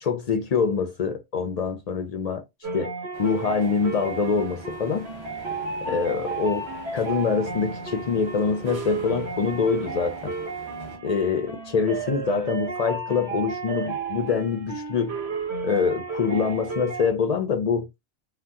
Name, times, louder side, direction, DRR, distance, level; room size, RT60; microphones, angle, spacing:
voice 1, 0.0-2.4 2.7-2.9 3.2-5.1 5.9-6.6 6.9-10.3 11.0-15.1 15.6-17.9, left 5 dB, 55° left, 0.4 m, -25 dB
sound 1, 2.6-17.1, right 4 dB, 75° right, 1.3 m, -33 dB
sound 2, 3.1-11.0, right 2 dB, 30° right, 0.8 m, -44 dB
2.7 x 2.1 x 3.5 m
omnidirectional pair, 1.1 m